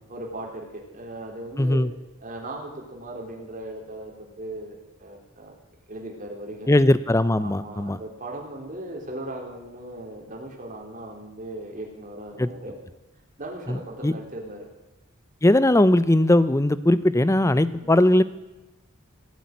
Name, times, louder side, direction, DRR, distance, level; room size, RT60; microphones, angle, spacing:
voice 1, 0.1-1.9 2.2-5.5 5.9-6.7 7.4-12.8 13.4-14.7 17.7-17.9, right 1 dB, 40° right, 0 dB, 3.4 m, -38 dB
voice 2, 1.6-1.9 6.7-8.0 12.4-12.5 13.7-14.1 15.4-18.2, left 1 dB, 15° left, 15 dB, 0.5 m, -19 dB
16.5 x 8.3 x 9.6 m, 1.0 s
head